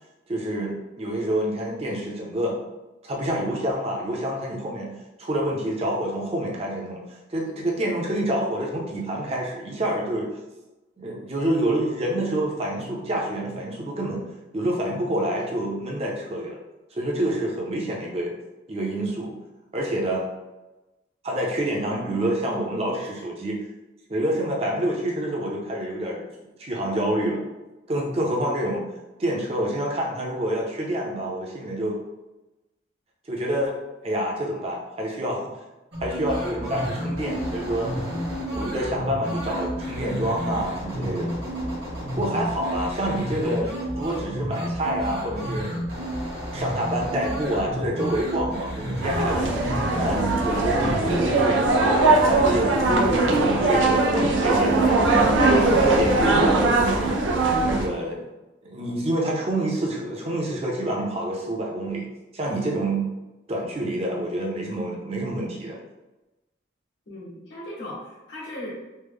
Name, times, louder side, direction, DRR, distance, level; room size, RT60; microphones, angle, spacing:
voice 1, 0.3-2.6 3.0-4.9 5.2-7.0 7.3-10.3 11.0-14.2 14.5-16.6 16.9-18.3 18.7-19.3 19.7-20.2 21.2-23.6 24.1-26.2 26.6-27.4 27.9-28.8 29.2-32.0 33.3-33.8 34.0-35.5 36.0-37.9 38.5-41.3 42.2-45.7 46.5-49.4 49.9-51.9 52.2-54.9 55.8-57.2 57.7-58.2 58.6-62.1 62.3-63.0 63.5-65.8, right 1 dB, 30° right, -2 dB, 0.5 m, -27 dB
sound 1, 35.9-51.2, equal, 60° right, 1.0 m, -31 dB
sound 2, 37.0-42.3, left 2 dB, 25° left, 0.3 m, -40 dB
sound 3, 49.0-57.9, right 2 dB, 90° right, 0.5 m, -20 dB
voice 2, 67.1-68.7, left 1 dB, 75° left, -7 dB, 1.3 m, -37 dB
3.2 x 2.0 x 3.4 m, 1.1 s
head